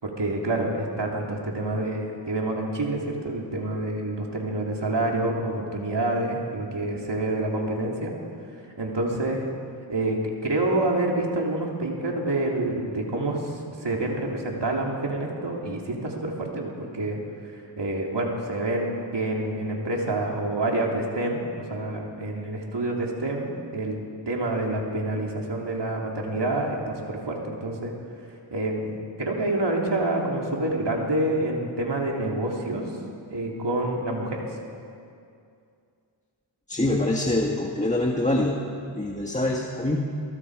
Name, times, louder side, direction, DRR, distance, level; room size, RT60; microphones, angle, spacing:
voice 1, 0.0-8.1 8.8-9.4 9.9-17.2 17.5-23.9 24.3-27.9 28.5-32.8 33.3-34.5, right 2 dB, 60° right, -1 dB, 3.4 m, -27 dB
voice 2, 36.7-38.6 38.9-40.0, left 1 dB, 15° left, -1 dB, 1.7 m, -25 dB
23.5 x 23.0 x 5.0 m, 2.4 s
wide cardioid pair, 65°, 48 cm